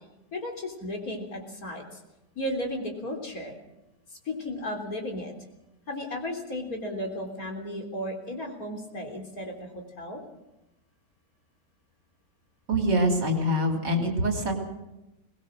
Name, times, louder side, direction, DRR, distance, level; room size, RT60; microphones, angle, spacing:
voice 1, 0.3-2.0 2.4-3.6 4.1-5.3 5.9-9.7 10.0-10.2, left 1 dB, 50° left, 1 dB, 4.1 m, -34 dB
voice 2, 12.7-14.5, equal, 65° right, 2 dB, 3.9 m, -24 dB
22.0 x 19.5 x 6.5 m, 0.95 s
omnidirectional pair, 2.0 m